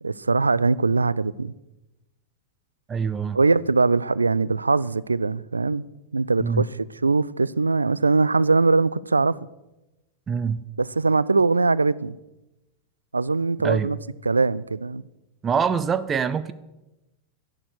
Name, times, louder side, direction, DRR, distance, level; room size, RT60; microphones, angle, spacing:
voice 1, 0.0-1.5 3.3-5.9 6.1-9.4 10.8-12.2 13.1-14.0 14.2-15.0, right 3 dB, 80° right, 0.4 m, -21 dB
voice 2, 2.9-3.4 6.4-6.7 10.3-10.6 13.6-13.9 15.4-16.5, right 6 dB, 20° right, 0.6 m, -24 dB
12.0 x 11.0 x 6.4 m
figure-of-eight pair, 90°, 0 cm